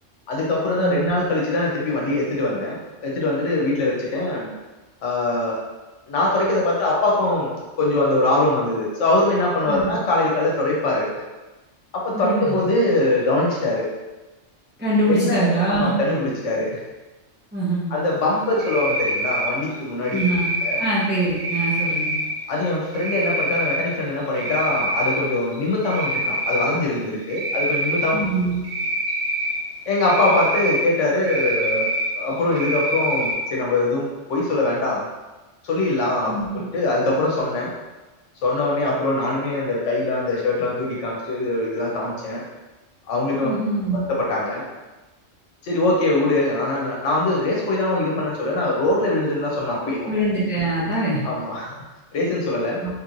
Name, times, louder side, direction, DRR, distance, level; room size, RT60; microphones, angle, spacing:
voice 1, 0.3-4.5 5.0-5.6 6.1-7.5 7.8-11.2 11.9-13.9 15.1-16.8 17.9-20.2 20.6-20.8 22.5-28.2 29.9-31.9 32.1-35.0 35.6-37.7 38.4-42.4 43.1-43.5 44.1-44.6 45.6-50.1 51.2-51.8 52.1-52.8, left 2 dB, 80° left, -3 dB, 1.1 m, -22 dB
voice 2, 0.8-1.1 9.7-9.8 12.1-12.6 14.8-15.9 17.5-17.9 20.1-20.5 20.8-22.1 28.1-28.6 36.2-36.5 43.4-44.1 50.1-51.2 52.8-52.9, right 2 dB, 10° right, -9 dB, 0.6 m, -23 dB
Cricket, 18.6-19.5 20.0-20.9 21.4-22.2 22.9-23.8 24.2-25.2 25.5-26.7 27.3-28.1 28.6-29.5 30.0-30.8 31.2-32.1 32.5-33.3, right 1 dB, 85° right, 1.2 m, -25 dB
3.3 x 3.0 x 2.5 m, 1.1 s
omnidirectional pair, 1.3 m